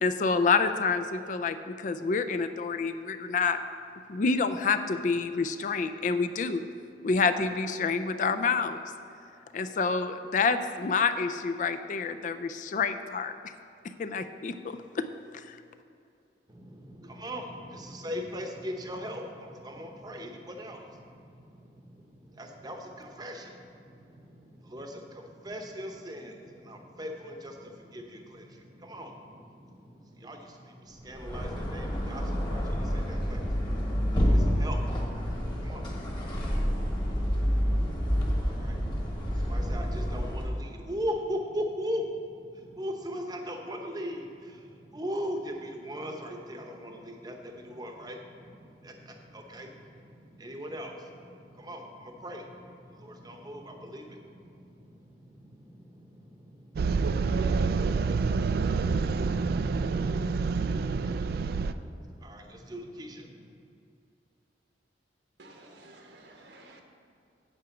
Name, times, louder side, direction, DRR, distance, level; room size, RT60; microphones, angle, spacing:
voice 1, 0.0-3.6 4.1-6.7 7.0-8.8 9.5-13.4 14.0-15.0 15.3-15.6, left 4 dB, 45° left, 9 dB, 0.4 m, -28 dB
voice 2, 16.5-63.5, equal, 20° right, 3 dB, 0.8 m, -40 dB
sound 1, 31.1-40.6, equal, 25° left, 1.3 m, -28 dB
sound 2, 56.8-61.7, right 4 dB, 55° right, 0.3 m, -27 dB
voice 3, 65.4-66.8, right 2 dB, 75° right, 2 dB, 1.1 m, -52 dB
8.8 x 4.9 x 7.2 m, 2.6 s
head